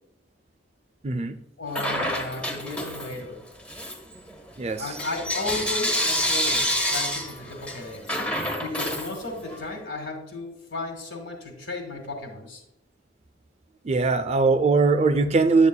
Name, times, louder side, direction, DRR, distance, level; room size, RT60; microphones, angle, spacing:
voice 1, 1.0-1.4 4.6-4.9 13.8-15.7, right 3 dB, 35° right, 10 dB, 0.4 m, -21 dB
voice 2, 1.6-3.4 4.8-8.2 8.6-12.6, left 2 dB, 75° left, 2 dB, 1.7 m, -34 dB
Bell / Coin (dropping), 1.7-3.3 3.6-9.6, equal, 5° left, 0.8 m, -28 dB
8.5 x 7.3 x 2.2 m, 0.81 s
head